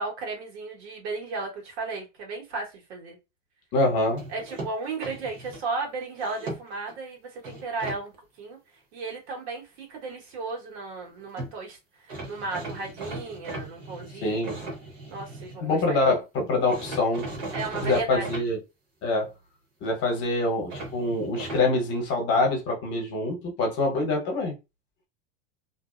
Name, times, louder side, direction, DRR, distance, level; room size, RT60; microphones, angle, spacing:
voice 1, 0.0-3.2 4.3-8.1 8.4-8.6 8.9-14.4 15.1-16.0 17.5-18.3, right 3 dB, 75° right, 1.3 m, -34 dB
voice 2, 3.7-4.2 14.2-14.6 15.6-17.3 17.8-18.6 19.0-19.3 19.8-24.5, left 2 dB, 35° left, 1.0 m, -25 dB
sound 1, 4.2-5.6 6.2-6.9 7.4-8.0 11.1-11.2 11.4-11.5 12.1-15.6 16.7-18.4 20.7-21.6, right 2 dB, 40° right, 0.9 m, -37 dB
2.6 x 2.0 x 2.4 m
supercardioid pair, 155°, 33 cm